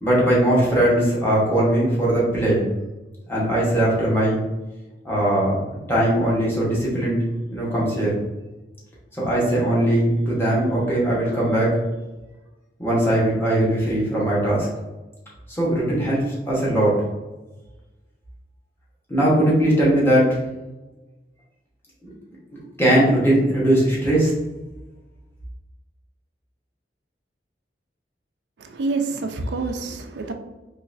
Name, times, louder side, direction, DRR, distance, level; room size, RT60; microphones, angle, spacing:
voice 1, 0.0-2.6 3.3-4.4 5.0-7.2 7.5-8.2 9.2-11.8 12.8-14.7 15.5-16.9 19.1-20.4 22.0-22.1 22.5-24.3, right 1 dB, 15° left, -6 dB, 1.1 m, -20 dB
voice 2, 28.6-30.3, right 3 dB, 75° right, 5 dB, 0.4 m, -27 dB
3.9 x 3.1 x 2.5 m, 1.1 s
head